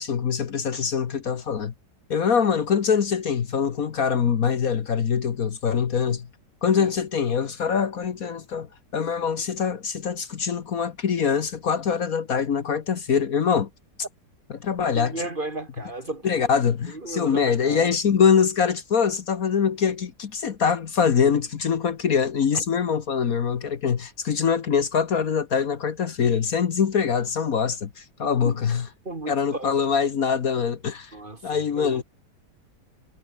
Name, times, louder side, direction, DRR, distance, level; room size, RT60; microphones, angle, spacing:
voice 1, 0.0-1.7 2.1-6.3 6.6-8.7 8.9-13.7 14.5-15.1 16.2-28.9 29.3-31.1 31.4-32.0, left 7 dB, 60° left, 1.6 m, -23 dB
voice 2, 14.9-16.5 16.9-18.0 22.5-22.6 28.4-28.6 29.0-29.7 31.1-32.0, right 2 dB, 30° right, 2.5 m, -34 dB
omnidirectional pair, 1.8 m